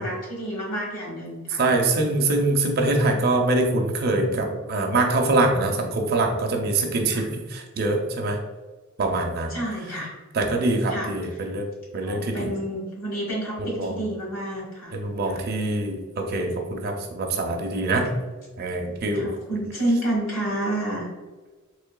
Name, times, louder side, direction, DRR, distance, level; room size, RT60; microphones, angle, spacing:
voice 1, 0.0-1.6 7.0-7.3 9.5-10.1 10.9-11.5 12.0-15.4 19.1-21.1, right 1 dB, 70° left, -3 dB, 1.4 m, -29 dB
voice 2, 1.6-8.4 9.0-9.5 10.3-11.6 11.9-12.5 13.6-14.0 14.9-18.1 18.6-19.3, right 2 dB, 50° right, 2 dB, 0.5 m, -24 dB
3.7 x 3.1 x 2.3 m, 1.3 s
head